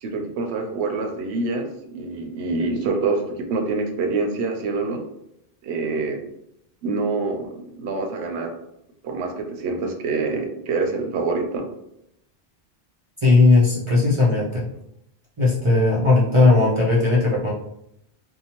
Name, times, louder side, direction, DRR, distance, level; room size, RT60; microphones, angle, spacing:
voice 1, 0.0-5.0 5.6-6.2 6.8-8.5 9.0-11.7, right 3 dB, 85° right, 3 dB, 0.8 m, -26 dB
voice 2, 13.2-14.7 15.4-17.5, left 3 dB, 40° right, -6 dB, 0.5 m, -17 dB
2.7 x 2.0 x 2.8 m, 0.79 s
omnidirectional pair, 1.1 m